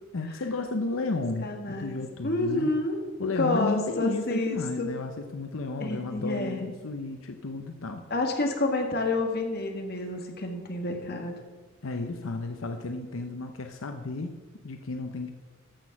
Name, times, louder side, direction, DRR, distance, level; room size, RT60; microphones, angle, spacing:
voice 1, 0.1-2.7 3.2-8.0 11.8-14.4 14.6-15.3, left 3 dB, 90° left, 6 dB, 0.7 m, -33 dB
voice 2, 1.4-2.0 2.2-3.0 3.4-4.9 5.8-6.7 8.1-11.3, left 2 dB, 50° left, 3 dB, 1.7 m, -29 dB
14.5 x 6.3 x 5.9 m, 1.4 s
head